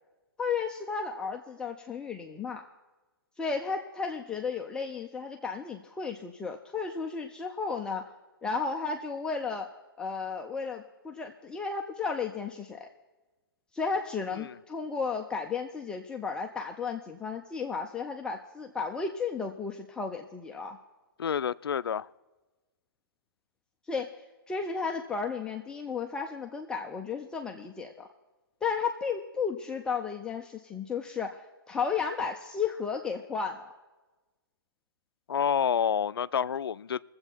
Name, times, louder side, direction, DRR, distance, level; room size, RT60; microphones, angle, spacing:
voice 1, 0.4-2.6 3.4-8.0 8.4-9.7 10.0-12.9 13.7-20.8 23.9-24.1 24.5-28.1 28.6-33.7, left 5 dB, 5° left, 0.4 m, -33 dB
voice 2, 21.2-22.1 35.3-37.0, left 8 dB, 80° left, 0.4 m, -28 dB
20.5 x 7.8 x 4.5 m
hypercardioid pair, 140°, 12 cm